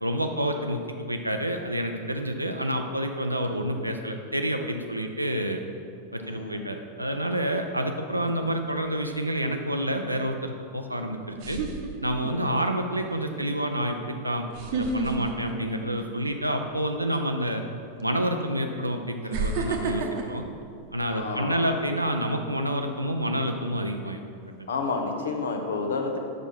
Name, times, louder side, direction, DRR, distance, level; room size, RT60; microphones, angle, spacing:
voice 1, 0.0-5.6 6.1-11.6 12.0-14.5 14.7-17.6 18.0-20.4 20.9-24.2, equal, 85° right, 5 dB, 0.4 m, -28 dB
voice 2, 6.2-6.6 10.9-11.2 12.3-12.5 15.4-15.7 18.6-18.9 21.1-21.7 24.7-26.2, left 4 dB, 65° left, 4 dB, 0.7 m, -31 dB
sound 1, 8.3-8.7 10.6-10.7 11.4-12.5 13.0-13.2 14.5-16.4 16.7-17.0 18.0-18.1 19.3-21.6 22.0-22.3, right 3 dB, 50° right, 0.8 m, -31 dB
6.1 x 5.5 x 4.5 m, 2.4 s
figure-of-eight pair, 90°, 0 cm